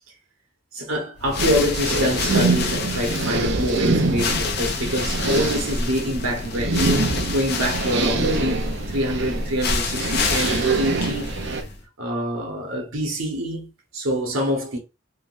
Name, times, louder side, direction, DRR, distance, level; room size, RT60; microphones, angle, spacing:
voice 1, 0.7-6.9 7.2-11.5 12.0-14.8, equal, 90° right, 1.2 m, -26 dB
sound 1, 1.2-11.8, left 4 dB, 55° left, 0.6 m, -29 dB
sound 2, 1.4-11.6, right 3 dB, 60° right, 0.6 m, -25 dB
3.7 x 2.2 x 2.6 m
head